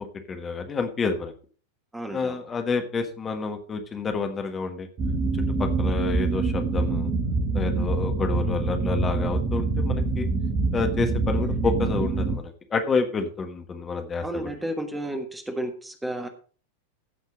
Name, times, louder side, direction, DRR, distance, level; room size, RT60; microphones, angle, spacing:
voice 1, 0.3-1.3 2.1-4.9 5.6-7.1 7.5-10.3 10.7-14.5, left 4 dB, 20° left, 6 dB, 1.5 m, -29 dB
voice 2, 1.9-2.4 14.2-16.3, right 1 dB, 5° right, 6 dB, 1.5 m, -32 dB
sound 1, 5.0-12.4, right 3 dB, 35° right, 1.9 m, -25 dB
15.5 x 5.4 x 5.2 m, 0.40 s
figure-of-eight pair, 90°, 0 cm